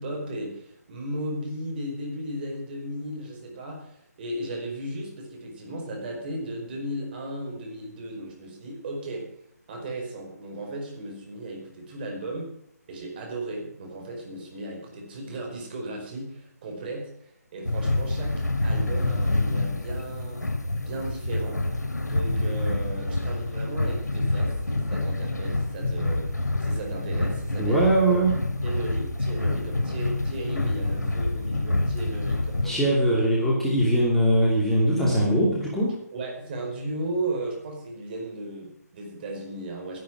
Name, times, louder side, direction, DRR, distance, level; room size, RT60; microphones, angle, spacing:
voice 1, 0.0-9.3 9.7-12.5 12.9-20.4 20.8-21.6 22.0-27.9 28.6-33.0 36.1-40.0, right 1 dB, 35° right, 1 dB, 4.9 m, -35 dB
sound 1, 17.7-32.7, left 2 dB, 90° left, 2.3 m, -27 dB
voice 2, 27.6-28.4 32.6-35.9, right 1 dB, 5° left, -6 dB, 2.8 m, -21 dB
12.5 x 11.0 x 6.1 m, 0.73 s
figure-of-eight pair, 150°, 9 cm